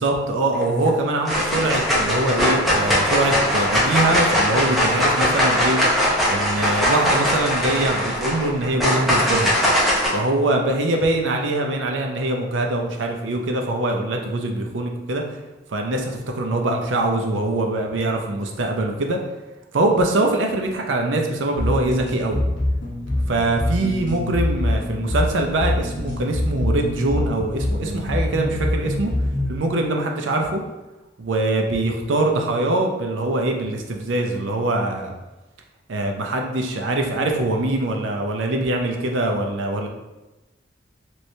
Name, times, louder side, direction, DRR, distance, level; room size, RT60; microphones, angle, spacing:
voice 1, 0.0-5.8 6.3-9.5 10.1-15.2 15.7-19.2 19.7-22.4 23.3-29.1 29.5-30.6 31.2-35.1 35.9-39.9, right 2 dB, 90° right, 2 dB, 0.5 m, -23 dB
sound 1, 0.5-0.9 1.2-10.1, equal, ahead, 0.8 m, -20 dB
sound 2, 21.6-29.6, left 1 dB, 65° left, 0.8 m, -24 dB
3.1 x 3.1 x 2.7 m, 1.1 s
head